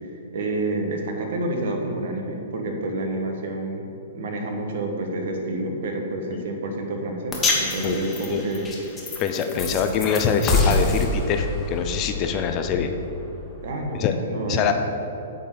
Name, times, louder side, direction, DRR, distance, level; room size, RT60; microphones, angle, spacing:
voice 1, 0.0-3.9 4.1-8.6 9.7-9.8 13.6-14.7, right 2 dB, 60° right, 3 dB, 1.2 m, -29 dB
sound 1, 7.3-13.7, left 3 dB, 15° left, 1.3 m, -27 dB
voice 2, 9.2-12.9 14.0-14.1 14.5-14.7, left 7 dB, 35° left, 6 dB, 0.6 m, -23 dB
8.6 x 3.9 x 6.8 m, 2.8 s
hypercardioid pair, 120°, 0 cm